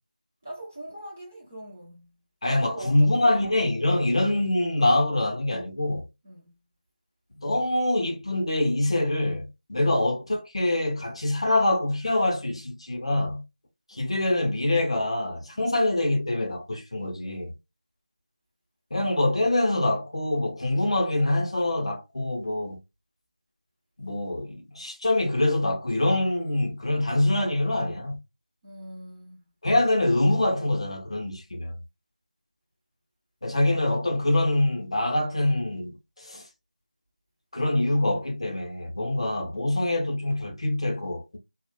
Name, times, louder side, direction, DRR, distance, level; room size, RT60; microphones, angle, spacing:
voice 1, 0.4-2.1 2.4-3.4 6.2-6.5 9.7-9.8 15.6-15.7 28.6-29.5, right 1 dB, 10° right, 0.4 m, -41 dB
voice 2, 2.4-6.1 7.4-13.4 13.9-17.5 18.9-22.8 24.0-28.2 29.6-31.8 33.4-36.4 37.5-41.4, left 1 dB, 40° left, 0.6 m, -25 dB
2.2 x 2.0 x 3.1 m
figure-of-eight pair, 170°, 5 cm